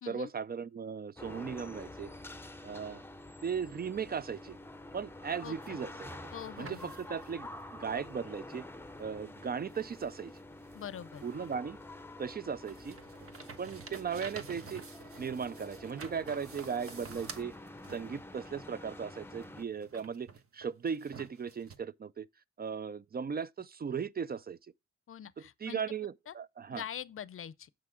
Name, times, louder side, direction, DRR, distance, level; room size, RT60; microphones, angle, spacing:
voice 1, 0.1-2.1 2.6-3.0 3.4-4.6 4.9-6.1 6.6-8.6 9.0-10.3 11.2-11.8 12.2-13.0 13.6-14.9 15.2-17.5 17.9-20.3 20.5-22.3 22.6-24.6 25.6-26.8, right 6 dB, 35° right, 0.4 m, -37 dB
sound 1, 1.2-19.6, left 1 dB, 10° left, 0.6 m, -48 dB
sound 2, 5.4-7.4 9.0-9.1 9.7-11.8 12.2-18.4 19.4-21.8, right 5 dB, 50° right, 1.3 m, -50 dB
voice 2, 6.3-6.9 10.7-11.2 25.1-25.8 26.3-26.4 26.7-27.7, left 9 dB, 45° left, 0.6 m, -43 dB
7.7 x 6.0 x 4.8 m
cardioid pair, 95°, 29 cm